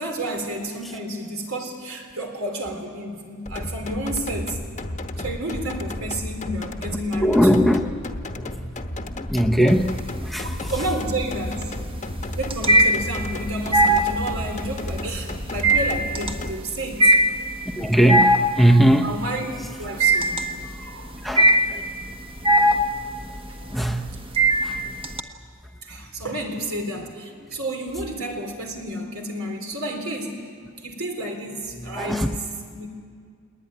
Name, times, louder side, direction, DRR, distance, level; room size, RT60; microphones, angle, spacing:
voice 1, 0.0-4.6 5.2-7.4 10.4-11.8 12.4-17.1 19.0-19.5 19.8-21.1 25.8-30.4 30.8-32.4 32.7-32.9, right 1 dB, 70° right, 3 dB, 3.7 m, -31 dB
sound 1, 3.5-16.5, left 1 dB, 35° left, 1.1 m, -32 dB
voice 2, 7.2-7.8 8.3-8.8 9.1-10.5 17.8-19.1 21.2-21.8 23.7-24.2 24.6-24.8 32.0-32.3, equal, ahead, 4 dB, 0.8 m, -20 dB
sound 2, 9.7-10.3 10.7-25.2, right 1 dB, 25° right, 1.2 m, -20 dB
20.5 x 20.0 x 9.9 m, 2.1 s
head